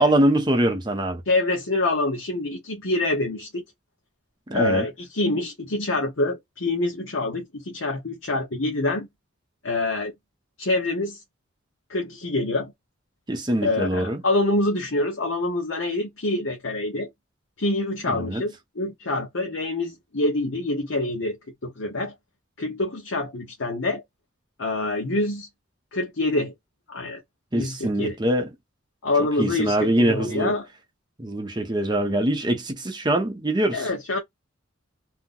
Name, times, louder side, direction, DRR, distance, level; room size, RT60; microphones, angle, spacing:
voice 1, 0.0-1.2 4.5-4.9 13.3-14.2 18.1-18.4 27.5-28.5 29.4-30.5 31.2-33.9, right 1 dB, 20° right, 0.6 m, -23 dB
voice 2, 1.3-3.6 4.5-9.1 9.6-10.1 10.6-11.2 11.9-12.7 13.6-17.1 17.6-22.1 22.6-24.0 24.6-25.5 25.9-26.5 26.9-27.2 27.5-28.2 29.0-30.7 33.7-34.2, left 2 dB, 70° left, 0.9 m, -26 dB
2.8 x 2.0 x 3.7 m
head